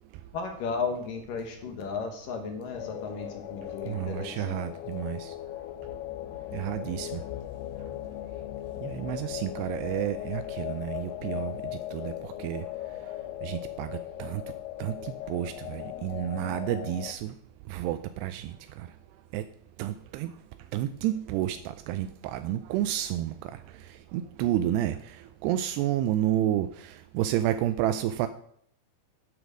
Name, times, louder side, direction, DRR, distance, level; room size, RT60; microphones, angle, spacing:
voice 1, 0.3-4.6, left 5 dB, 65° left, 5 dB, 2.6 m, -34 dB
sound 1, 2.7-17.1, left 14 dB, 80° left, 2.5 m, -38 dB
voice 2, 3.9-5.3 6.5-7.1 8.8-11.5 11.9-12.6 13.4-13.9 14.2-14.4 14.8-17.3 17.7-18.9 19.3-19.4 19.8-20.3 20.7-23.3 24.1-25.0 25.4-28.3, right 12 dB, 85° right, 11 dB, 2.6 m, -30 dB
9.1 x 8.0 x 6.3 m, 0.67 s
omnidirectional pair, 4.9 m